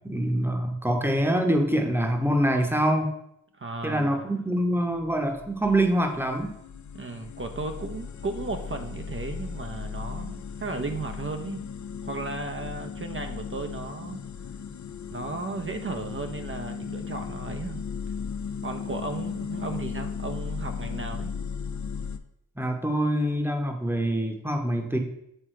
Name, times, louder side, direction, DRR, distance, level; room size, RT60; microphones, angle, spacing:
voice 1, 0.0-3.1 3.8-6.5 22.6-25.0, right 1 dB, 5° right, 4 dB, 1.0 m, -25 dB
voice 2, 3.6-4.3 6.9-11.7 12.0-14.2 15.1-17.8 18.6-21.3, right 3 dB, 35° right, 5 dB, 0.6 m, -35 dB
sound 1, 5.0-22.2, left 6 dB, 50° left, 0.5 m, -36 dB
6.5 x 3.5 x 4.5 m, 0.77 s
cardioid pair, 60°, 36 cm